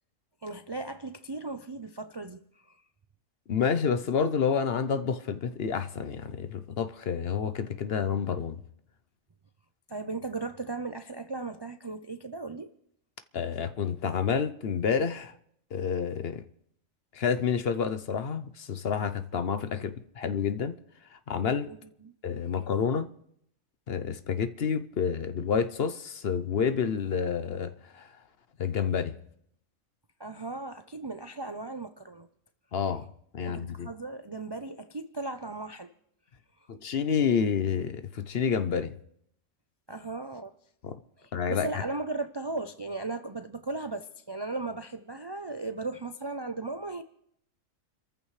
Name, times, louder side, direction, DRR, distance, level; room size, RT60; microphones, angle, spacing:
voice 1, 0.4-2.8 9.9-12.7 21.7-22.1 30.2-32.3 33.4-35.9 39.9-40.5 41.2-47.0, right 3 dB, 35° right, 0.4 m, -37 dB
voice 2, 3.5-8.6 13.3-15.3 15.7-16.4 17.1-20.7 21.1-21.7 22.2-23.1 23.9-28.1 28.6-29.1 32.7-33.1 33.3-33.9 36.7-38.9 40.8-40.9 41.3-41.7, left 6 dB, 55° left, 0.9 m, -29 dB
29.0 x 14.5 x 3.2 m
omnidirectional pair, 1.3 m